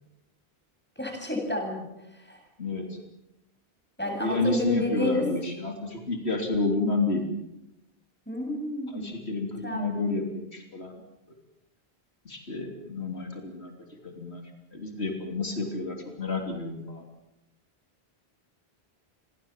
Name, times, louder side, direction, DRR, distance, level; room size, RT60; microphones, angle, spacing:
voice 1, 1.0-2.4 4.0-5.2 8.3-9.1 9.6-10.2, left 1 dB, 10° left, 1 dB, 7.9 m, -31 dB
voice 2, 2.6-3.0 4.2-7.3 8.9-11.0 12.3-14.4 14.7-17.1, left 3 dB, 75° left, 3 dB, 3.6 m, -30 dB
30.0 x 22.0 x 7.4 m, 0.88 s
omnidirectional pair, 1.1 m